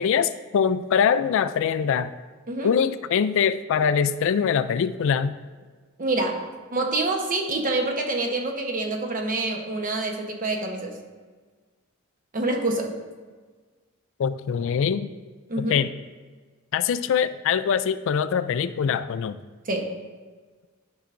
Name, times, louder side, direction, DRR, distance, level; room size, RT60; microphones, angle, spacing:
voice 1, 0.0-2.1 2.6-5.3 14.2-15.1 15.6-15.9 16.7-19.4, left 7 dB, 65° left, 13 dB, 0.3 m, -23 dB
voice 2, 6.0-6.4 6.7-11.0 12.3-12.9 15.5-15.8 19.7-19.9, right 2 dB, 40° right, 2 dB, 1.0 m, -26 dB
12.0 x 5.6 x 2.6 m, 1.4 s
head